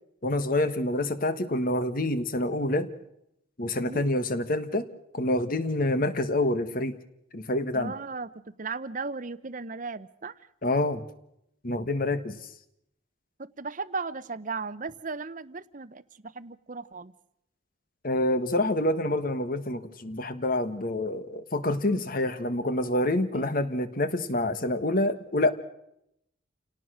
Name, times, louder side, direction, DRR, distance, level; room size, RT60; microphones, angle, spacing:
voice 1, 0.2-2.9 3.6-4.9 5.1-7.0 7.3-7.9 10.6-11.0 11.6-12.4 18.0-25.5, left 1 dB, 45° left, 11 dB, 1.5 m, -27 dB
voice 2, 7.7-8.3 8.6-10.3 13.4-17.1 21.9-22.0 23.3-23.5, right 4 dB, 45° right, 15 dB, 0.8 m, -36 dB
28.5 x 18.0 x 6.4 m, 0.78 s
head